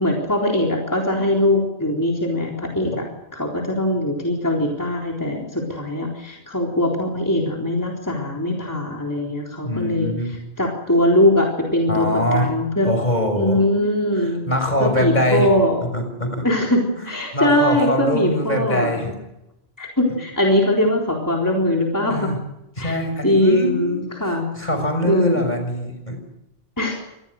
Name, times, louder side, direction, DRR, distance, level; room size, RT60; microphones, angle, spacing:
voice 1, 0.0-3.1 3.3-10.1 10.6-13.0 13.4-14.4 14.8-15.8 16.4-19.1 19.8-22.3 22.8-22.9 23.2-24.5 25.0-25.4 26.8-27.0, left 1 dB, 15° left, -1 dB, 4.0 m, -21 dB
voice 2, 9.6-10.3 11.9-12.5 12.8-13.6 14.2-15.5 15.9-16.5 17.0-17.1 17.3-19.1 22.1-22.4 22.8-24.0 24.5-26.2, equal, 45° left, 6 dB, 6.5 m, -23 dB
26.5 x 19.5 x 6.6 m, 0.89 s
omnidirectional pair, 1.1 m